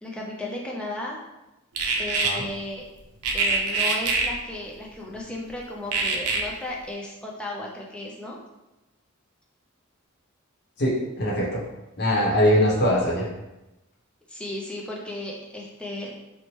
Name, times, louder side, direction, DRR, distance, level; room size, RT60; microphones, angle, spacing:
voice 1, 0.0-1.2 2.0-2.8 3.3-8.4 14.3-16.2, left 1 dB, 5° left, -3 dB, 0.3 m, -35 dB
sound 1, 1.8-2.3 3.2-4.3 5.9-6.4, right 4 dB, 90° right, 0.5 m, -24 dB
voice 2, 10.8-11.6 12.0-13.3, equal, 45° left, -5 dB, 0.8 m, -22 dB
2.9 x 2.1 x 3.0 m, 0.98 s
head